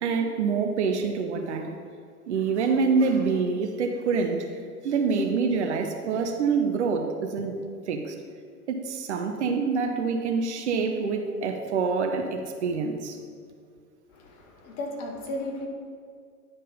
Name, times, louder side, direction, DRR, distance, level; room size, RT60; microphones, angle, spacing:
voice 1, 0.0-1.8 2.3-4.5 4.8-8.1 8.7-13.2, right 5 dB, 50° right, 4 dB, 0.7 m, -26 dB
voice 2, 14.1-15.7, left 1 dB, 30° left, 1 dB, 0.9 m, -35 dB
9.5 x 3.7 x 5.3 m, 2.2 s
figure-of-eight pair, 100°, 46 cm